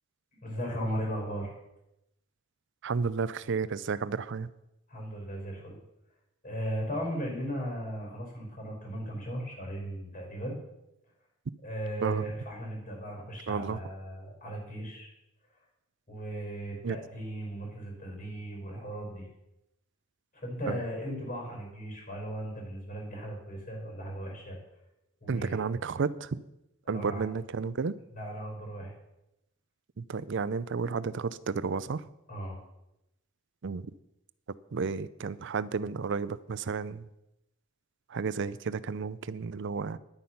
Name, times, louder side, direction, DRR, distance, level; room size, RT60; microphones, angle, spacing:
voice 1, 0.3-1.5 4.9-5.8 6.4-10.6 11.6-15.1 16.1-19.3 20.3-24.6 25.2-25.6 26.9-27.2 28.1-28.9 32.3-32.6, equal, 40° left, 0 dB, 5.3 m, -37 dB
voice 2, 2.8-4.5 12.0-12.3 13.5-13.8 16.8-17.0 20.7-20.8 25.3-26.4 26.9-27.9 30.0-32.0 33.6-33.9 34.7-37.1 38.1-40.0, right 5 dB, 60° right, 17 dB, 0.5 m, -32 dB
10.5 x 9.4 x 5.8 m, 0.87 s
head